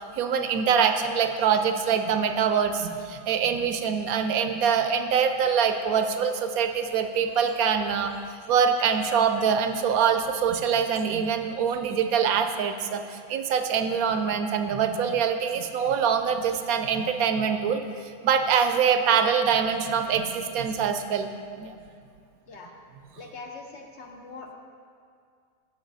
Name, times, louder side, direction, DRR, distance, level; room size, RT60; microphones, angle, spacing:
voice 1, 0.0-8.1 8.5-17.8 18.2-21.3 21.6-21.8, right 7 dB, 75° right, 7 dB, 1.0 m, -24 dB
voice 2, 23.2-24.5, left 4 dB, 55° left, 2 dB, 0.9 m, -42 dB
10.5 x 6.9 x 4.0 m, 2.3 s
omnidirectional pair, 1.6 m